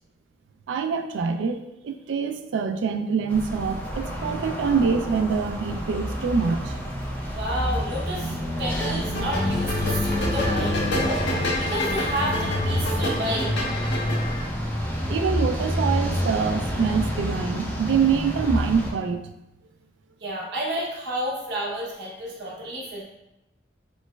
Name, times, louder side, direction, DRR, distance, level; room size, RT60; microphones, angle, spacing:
voice 1, 0.7-6.8 15.1-19.3, right 5 dB, 80° right, 7 dB, 0.3 m, -25 dB
sound 1, 3.3-18.9, equal, 10° left, 0.4 m, -28 dB
voice 2, 7.3-11.2 11.6-13.5 20.2-23.0, equal, 60° right, -4 dB, 0.7 m, -30 dB
sound 2, 8.8-14.5, left 1 dB, 70° left, 0.6 m, -29 dB
3.2 x 3.0 x 2.2 m, 0.91 s
head